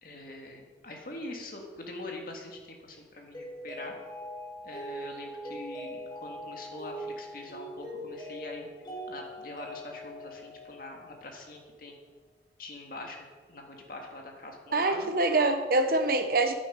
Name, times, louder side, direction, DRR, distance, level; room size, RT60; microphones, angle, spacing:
voice 1, 0.0-3.9 4.6-8.7 9.1-11.9 12.6-13.2 13.5-15.1, left 2 dB, 55° left, 1 dB, 2.0 m, -43 dB
Mallet percussion, 3.3-11.5, equal, 25° left, 2.9 m, -42 dB
voice 2, 14.7-16.5, right 2 dB, 55° right, 7 dB, 1.0 m, -25 dB
10.5 x 9.1 x 5.3 m, 1.4 s
head